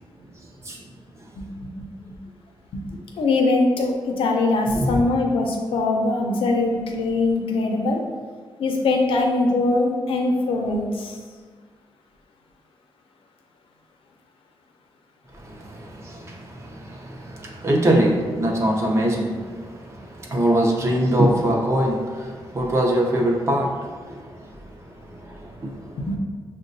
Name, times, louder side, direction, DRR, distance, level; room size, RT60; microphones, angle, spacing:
voice 1, 0.4-0.8 1.2-1.3 4.8-5.0 15.3-26.2, right 1 dB, 30° right, -1 dB, 0.6 m, -24 dB
voice 2, 1.3-1.7 2.0-2.2 3.2-8.0 8.6-11.2 26.1-26.2, left 2 dB, 85° left, 2 dB, 0.6 m, -22 dB
6.3 x 2.2 x 2.6 m, 1.5 s
wide cardioid pair, 140°, 9 cm